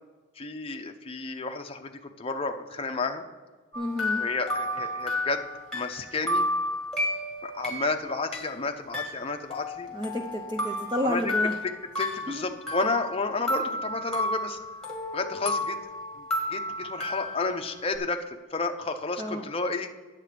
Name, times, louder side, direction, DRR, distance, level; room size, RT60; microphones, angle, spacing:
voice 1, 0.4-3.3 4.1-5.5 5.7-6.4 7.4-9.9 11.0-11.3 11.6-11.7 12.0-14.6 15.1-15.8 16.2-19.9, left 3 dB, 25° left, 5 dB, 0.6 m, -31 dB
sound 1, 3.7-8.5 8.9-13.2 13.5-18.0, left 1 dB, 5° left, 1.6 m, -32 dB
voice 2, 3.8-4.2 9.9-11.5 12.3-12.5 19.2-19.4, left 1 dB, 20° right, 3 dB, 0.6 m, -30 dB
9.4 x 7.4 x 5.0 m, 1.3 s
head